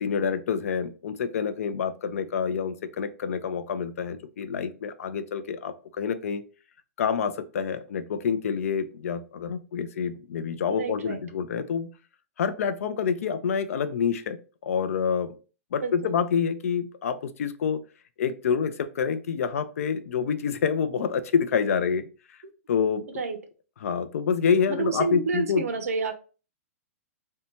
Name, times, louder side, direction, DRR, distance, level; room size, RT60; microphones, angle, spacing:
voice 1, 0.0-6.4 7.0-11.9 12.4-14.4 14.6-15.3 15.7-17.8 18.2-22.1 22.7-23.0 23.8-25.6, left 6 dB, 70° left, 11 dB, 0.4 m, -27 dB
voice 2, 10.7-11.2 15.8-16.1 23.1-23.4 24.7-26.1, right 4 dB, 85° right, 7 dB, 0.6 m, -29 dB
2.6 x 2.2 x 2.8 m, 0.36 s
hypercardioid pair, 150°, 8 cm